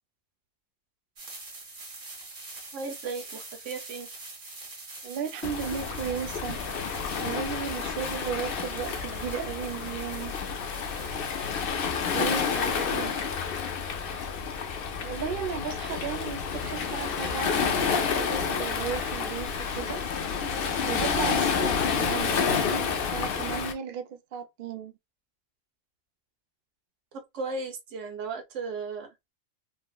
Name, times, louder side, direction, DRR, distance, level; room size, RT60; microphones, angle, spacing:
sound 1, 1.2-11.7, right 3 dB, 45° right, 1.1 m, -45 dB
voice 1, 2.7-4.1 12.1-13.0 13.5-13.6 21.2-21.5 27.1-29.1, right 4 dB, 65° right, 1.0 m, -36 dB
voice 2, 5.0-6.6 6.9-10.3 12.1-13.1 14.6-14.7 15.0-20.0 20.8-24.9, right 8 dB, 85° right, 0.4 m, -35 dB
Waves surf, 5.4-23.7, left 6 dB, 65° left, 0.5 m, -29 dB
sound 2, 11.9-12.1 12.6-12.8 13.2-13.3 13.9-14.1 14.9-15.1 16.0-16.1 16.5-16.6, left 4 dB, 85° left, 1.2 m, -43 dB
3.8 x 2.0 x 2.2 m
omnidirectional pair, 1.5 m